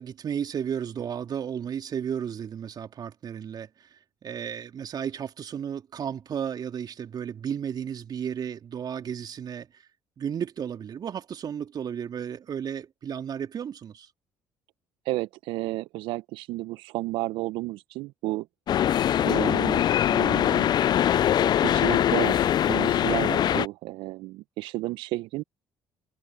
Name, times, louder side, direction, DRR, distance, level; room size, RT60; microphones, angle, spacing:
voice 1, 0.0-9.8 10.2-14.1, right 8 dB, 50° right, 3.6 m, -33 dB
voice 2, 15.0-18.5 19.2-20.7 21.4-25.4, right 19 dB, 65° right, 1.2 m, -32 dB
sound 1, 18.7-23.7, left 10 dB, 50° left, 0.7 m, -22 dB
hypercardioid pair, 50°, 9 cm